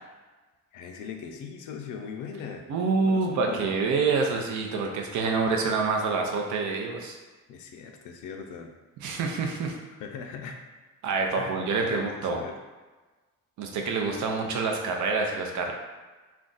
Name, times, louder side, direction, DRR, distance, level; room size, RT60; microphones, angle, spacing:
voice 1, 0.7-2.7 2.9-3.6 7.5-8.7 10.0-10.6 11.3-12.5, left 6 dB, 85° left, 4 dB, 0.5 m, -40 dB
voice 2, 2.7-7.2 9.0-9.8 11.0-12.4 13.6-15.7, right 4 dB, 75° right, 1 dB, 0.6 m, -27 dB
2.5 x 2.3 x 3.8 m, 1.3 s
cardioid pair, 90°, 30 cm